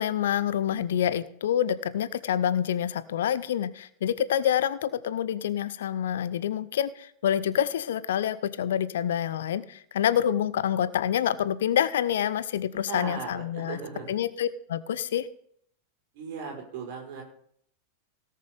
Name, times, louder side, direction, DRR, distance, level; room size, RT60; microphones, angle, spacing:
voice 1, 0.0-13.8 14.1-15.3, left 10 dB, 60° left, 16 dB, 0.6 m, -27 dB
voice 2, 12.7-14.2 16.1-17.2, right 5 dB, 50° right, 1 dB, 4.6 m, -37 dB
17.5 x 6.7 x 5.1 m, 0.67 s
figure-of-eight pair, 90°, 0 cm